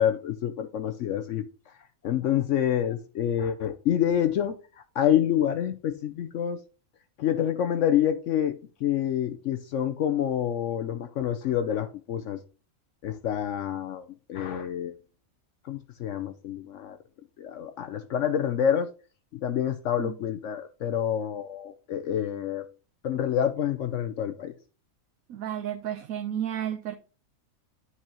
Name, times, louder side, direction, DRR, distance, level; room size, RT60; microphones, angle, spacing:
voice 1, 0.0-1.5 2.0-4.6 5.0-6.6 7.2-12.4 13.0-14.9 15.7-17.0 17.4-18.9 19.4-22.6 23.0-24.5, left 10 dB, 70° left, 0.9 m, -27 dB
voice 2, 25.3-26.9, right 10 dB, 80° right, 1.1 m, -32 dB
10.0 x 4.8 x 2.9 m
omnidirectional pair, 1.5 m